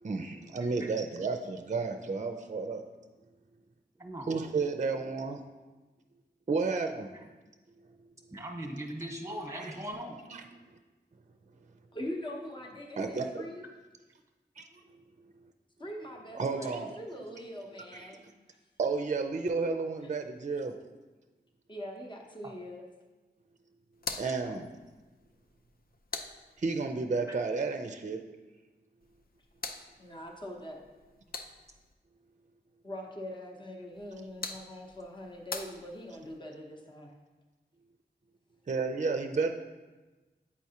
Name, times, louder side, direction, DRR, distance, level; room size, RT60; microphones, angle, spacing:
voice 1, 0.0-2.8 4.3-5.4 6.5-7.1 9.5-9.7 10.3-10.4 13.0-13.3 14.6-14.7 16.3-16.9 18.8-20.7 24.2-24.7 26.6-28.2 38.7-39.5, right 4 dB, 40° right, 6 dB, 0.4 m, -31 dB
voice 2, 4.0-4.3 8.3-10.2 24.1-24.2 27.3-27.4, right 1 dB, 15° right, 2 dB, 1.1 m, -39 dB
voice 3, 11.9-13.7 15.8-18.3 20.0-20.1 21.7-22.8 30.0-30.8 32.8-37.1, equal, 25° left, 1 dB, 0.8 m, -42 dB
sound 1, 23.9-27.0 29.0-31.9 33.9-36.4, left 4 dB, 55° left, 0.5 m, -44 dB
8.5 x 4.6 x 2.8 m, 1.2 s
wide cardioid pair, 50°, 18 cm